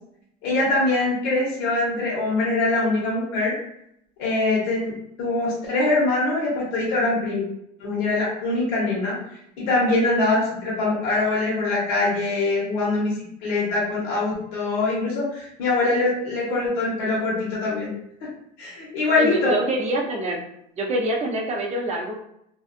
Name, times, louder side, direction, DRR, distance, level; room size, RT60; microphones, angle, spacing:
voice 1, 0.4-3.5 4.2-4.9 5.2-7.4 7.8-9.2 9.6-13.1 13.4-17.9 18.6-19.5, left 2 dB, 65° left, -5 dB, 1.1 m, -23 dB
voice 2, 19.1-20.4 20.8-22.2, right 1 dB, 30° right, 0 dB, 0.7 m, -25 dB
2.6 x 2.4 x 2.4 m, 0.75 s
supercardioid pair, 105°, 21 cm